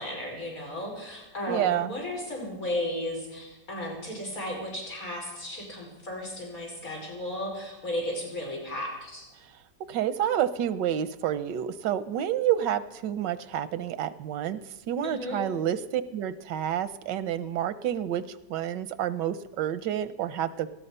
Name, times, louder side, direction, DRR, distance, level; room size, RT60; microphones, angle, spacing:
voice 1, 0.0-9.3 15.0-15.5, left 1 dB, 50° left, -2 dB, 5.3 m, -34 dB
voice 2, 1.5-1.9 9.9-14.6 14.9-20.7, right 10 dB, 90° right, 14 dB, 1.4 m, -29 dB
18.5 x 13.5 x 5.5 m, 1.0 s
omnidirectional pair, 1.9 m